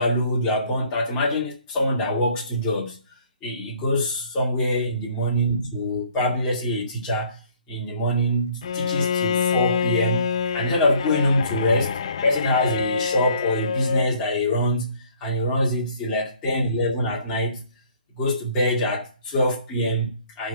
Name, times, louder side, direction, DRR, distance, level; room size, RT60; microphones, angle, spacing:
voice 1, 0.0-3.0 3.4-7.4 7.7-10.3 10.5-14.9 15.2-17.6 18.2-20.5, left 1 dB, 15° left, 2.2 m, -24 dB
Bowed string instrument, 8.6-14.1, left 7 dB, 40° left, 0.6 m, -26 dB
11.5 x 3.9 x 6.9 m
figure-of-eight pair, 155°, 5 cm